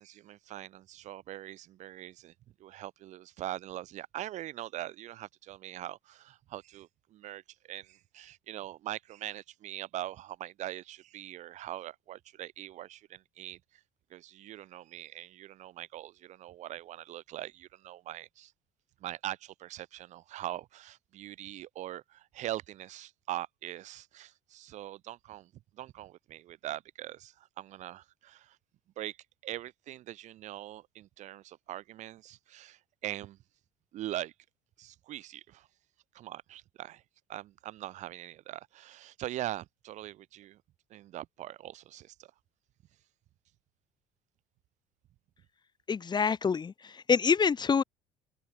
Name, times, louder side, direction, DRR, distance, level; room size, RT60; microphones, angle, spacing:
voice 1, 0.0-2.3 2.6-7.4 7.7-13.8 14.1-18.5 19.0-28.6 29.0-29.2 29.4-33.4 33.9-34.3 34.8-35.7 36.1-37.0 37.3-40.6 40.9-42.3, right 14 dB, 60° right, 7.6 m, -42 dB
voice 2, 45.9-46.7 47.1-47.8, left 6 dB, 30° left, 2.3 m, -25 dB
open air
hypercardioid pair, 70°, 14 cm